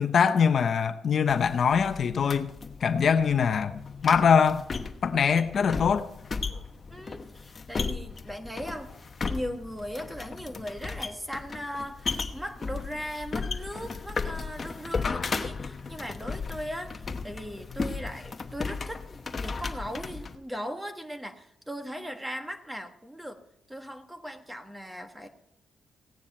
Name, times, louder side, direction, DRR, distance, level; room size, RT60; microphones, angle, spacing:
voice 1, 0.0-2.5 2.8-4.6 5.0-6.1, left 6 dB, 55° left, 0.8 m, -23 dB
sound 1, 1.3-20.4, left 4 dB, 35° left, 1.0 m, -35 dB
voice 2, 6.9-8.9 9.3-23.4 23.7-25.3, equal, 10° right, 1.5 m, -38 dB
16.5 x 9.6 x 4.4 m
cardioid pair, 95°, 0 cm